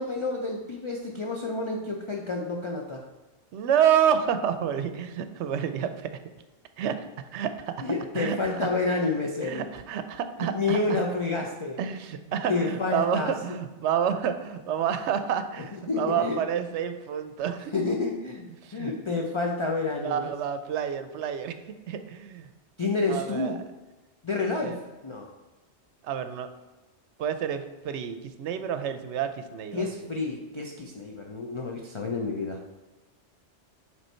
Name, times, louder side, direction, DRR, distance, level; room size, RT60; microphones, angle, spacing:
voice 1, 0.0-3.0 7.8-9.7 10.5-11.8 12.5-13.3 15.9-16.4 17.7-18.4 18.7-20.3 22.8-23.6 24.2-24.8 25.0-25.3 29.7-32.6, left 3 dB, 35° left, 0 dB, 0.5 m, -29 dB
voice 2, 3.5-6.2 6.8-7.1 7.3-7.7 8.1-8.4 9.4-11.0 11.8-17.7 18.6-18.9 20.0-21.5 21.9-22.5 23.1-23.5 24.6-24.8 26.0-26.5 27.2-29.8, right 8 dB, 80° right, 10 dB, 0.9 m, -28 dB
8.0 x 3.3 x 4.3 m, 1.2 s
omnidirectional pair, 1.2 m